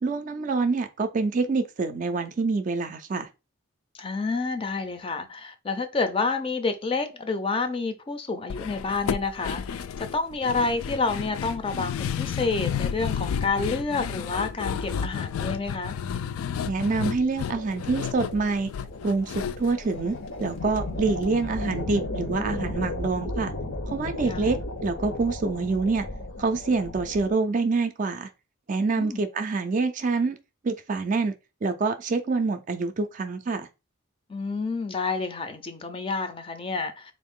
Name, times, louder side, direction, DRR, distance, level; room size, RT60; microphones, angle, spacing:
voice 1, 0.0-3.3 16.7-18.7 19.0-23.5 23.9-26.1 26.4-28.3 28.7-30.4 30.6-31.3 31.6-33.7, right 4 dB, 40° right, 0.4 m, -26 dB
voice 2, 3.9-16.0 24.3-24.5 29.0-29.2 34.3-37.1, left 4 dB, 25° left, 0.4 m, -29 dB
sound 1, 8.5-20.8 21.1-21.2 21.5-21.6, left 7 dB, 90° left, 0.3 m, -32 dB
sound 2, 17.4-27.3, left 2 dB, 70° left, 0.8 m, -35 dB
3.8 x 2.5 x 3.6 m
head